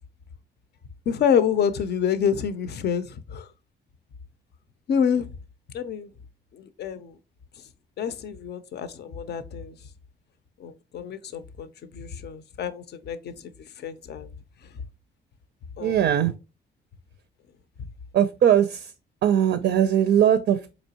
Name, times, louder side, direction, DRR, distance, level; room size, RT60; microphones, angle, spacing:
voice 1, 1.1-3.5 4.9-5.3 5.7-6.1 6.5-7.2 8.0-9.8 10.6-14.3 15.8-16.0, left 7 dB, 55° left, 0.5 m, -27 dB
voice 2, 15.8-16.3 18.1-18.9 19.2-20.7, right 10 dB, 55° right, 0.4 m, -20 dB
4.4 x 2.9 x 2.8 m
cardioid pair, 90°, 20 cm